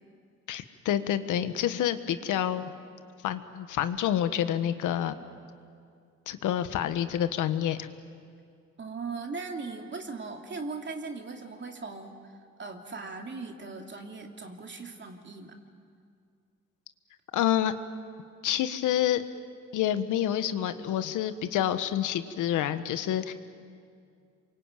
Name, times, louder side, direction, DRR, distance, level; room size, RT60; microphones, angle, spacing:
voice 1, 0.5-2.7 3.2-5.1 6.3-7.9 17.3-17.7 18.4-19.2 19.7-23.3, left 11 dB, 85° left, 11 dB, 1.4 m, -28 dB
voice 2, 8.8-12.3 12.6-15.6, right 4 dB, 40° right, 3 dB, 2.8 m, -39 dB
27.5 x 23.5 x 9.0 m, 2.3 s
cardioid pair, 90°, 30 cm